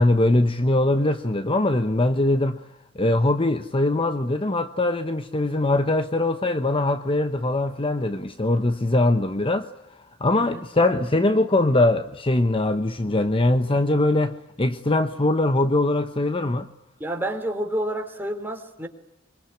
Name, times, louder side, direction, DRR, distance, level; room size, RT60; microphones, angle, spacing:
voice 1, 0.0-2.6 2.9-9.7 10.2-16.7, left 2 dB, 25° left, 0.9 m, -22 dB
voice 2, 17.0-18.9, right 1 dB, 10° right, 3.4 m, -29 dB
24.5 x 24.0 x 9.9 m
head